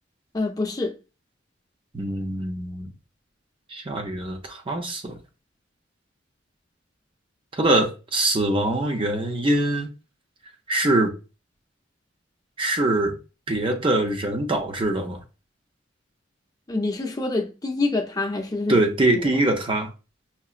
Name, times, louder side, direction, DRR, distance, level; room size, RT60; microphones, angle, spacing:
voice 1, 0.3-0.9 16.7-18.8 19.1-19.3, left 2 dB, 20° left, 0.5 m, -26 dB
voice 2, 1.9-2.9 3.7-5.2 7.5-9.9 10.7-11.1 12.6-13.2 13.5-15.2 18.7-19.9, right 1 dB, 30° right, 0.5 m, -23 dB
5.6 x 2.0 x 2.4 m
head